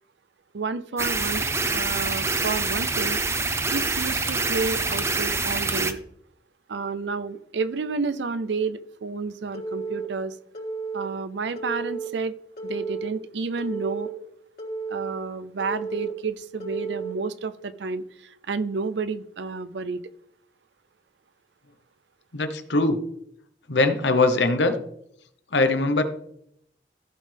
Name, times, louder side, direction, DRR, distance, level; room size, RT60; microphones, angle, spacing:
voice 1, 0.5-1.5 1.7-3.2 3.7-6.0 6.7-10.4 10.9-12.3 12.6-14.1 14.9-20.0, right 4 dB, 80° right, 14 dB, 0.5 m, -30 dB
sound 1, 1.0-5.9, right 3 dB, 15° right, 0.6 m, -26 dB
Telephone, 9.5-10.1 10.5-11.1 11.6-12.1 12.6-13.1 13.6-14.1 14.6-15.1 15.6-16.1 16.6-17.1, right 4 dB, 55° left, 3.2 m, -32 dB
voice 2, 22.3-23.0 23.7-24.7 25.5-26.0, left 2 dB, 85° left, 9 dB, 1.0 m, -21 dB
15.0 x 5.4 x 3.5 m, 0.74 s
head